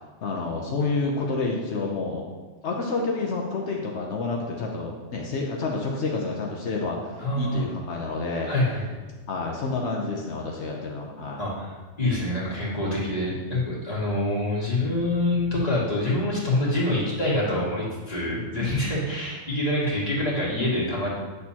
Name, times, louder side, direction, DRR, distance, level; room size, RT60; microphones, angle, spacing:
voice 1, 0.2-2.3 2.6-8.5 9.3-11.4 18.4-18.9, left 3 dB, 70° left, -1 dB, 1.1 m, -29 dB
voice 2, 7.2-7.6 8.5-8.8 11.4-21.1, left 1 dB, 35° left, -6 dB, 2.1 m, -26 dB
8.2 x 6.5 x 2.8 m, 1.3 s
omnidirectional pair, 1.2 m